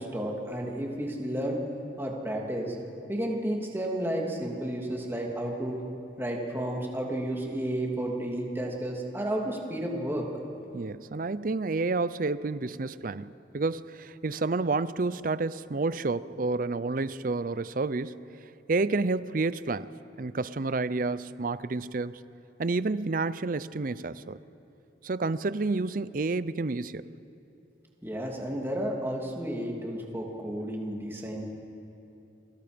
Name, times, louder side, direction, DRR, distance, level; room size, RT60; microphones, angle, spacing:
voice 1, 0.0-1.6 2.0-2.8 3.1-5.8 6.2-10.3 28.0-31.4, right 1 dB, 15° right, 2.7 m, -32 dB
voice 2, 10.7-18.2 18.7-19.9 20.2-22.2 22.6-24.4 25.0-27.1, right 3 dB, 50° right, 0.5 m, -30 dB
30.0 x 23.5 x 5.2 m
head